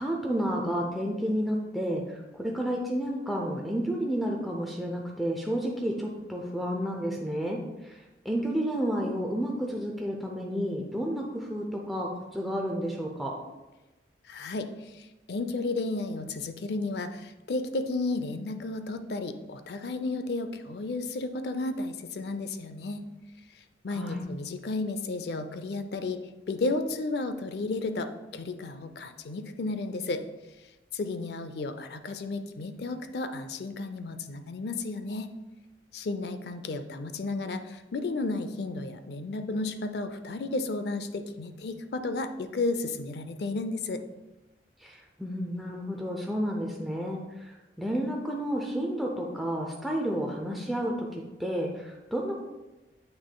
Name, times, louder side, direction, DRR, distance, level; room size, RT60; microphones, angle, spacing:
voice 1, 0.0-7.6 7.8-8.0 8.2-13.3 23.9-24.3 44.8-47.2 47.5-52.4, equal, ahead, -1 dB, 0.5 m, -31 dB
voice 2, 14.3-14.7 14.9-23.0 23.8-26.2 26.5-30.2 30.9-35.3 35.9-44.0, left 3 dB, 65° left, 9 dB, 0.4 m, -33 dB
8.2 x 6.2 x 2.2 m, 1.1 s
head